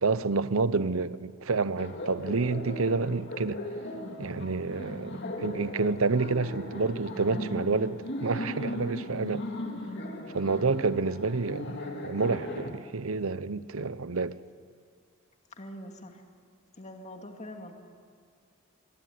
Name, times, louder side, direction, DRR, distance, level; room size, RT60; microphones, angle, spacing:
voice 1, 0.0-3.6 4.2-9.4 10.3-11.8 12.0-14.4, right 4 dB, 80° right, 0.8 m, -29 dB
Laughter, 1.8-12.7, left 1 dB, 55° left, 2.8 m, -38 dB
voice 2, 15.5-16.2 16.8-17.7, left 1 dB, 35° left, 2.3 m, -44 dB
24.5 x 23.0 x 9.4 m
head